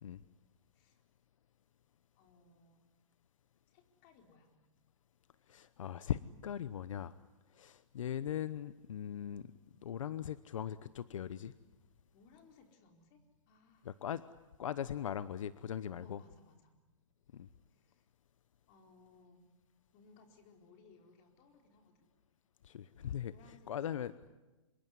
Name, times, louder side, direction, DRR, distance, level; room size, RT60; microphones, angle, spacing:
voice 1, 2.1-2.8 3.7-4.5 12.1-13.2 13.5-14.0 16.0-16.7 17.7-18.1 18.7-19.5 19.9-22.1 23.3-24.1, left 4 dB, 35° left, 4 dB, 4.4 m, -64 dB
voice 2, 5.5-7.1 7.5-9.5 9.8-11.5 13.8-14.2 14.6-16.2 17.3-17.5 22.6-23.3 23.7-24.1, left 9 dB, 80° left, 15 dB, 0.9 m, -39 dB
26.0 x 22.5 x 9.7 m, 1.2 s
hypercardioid pair, 155°, 17 cm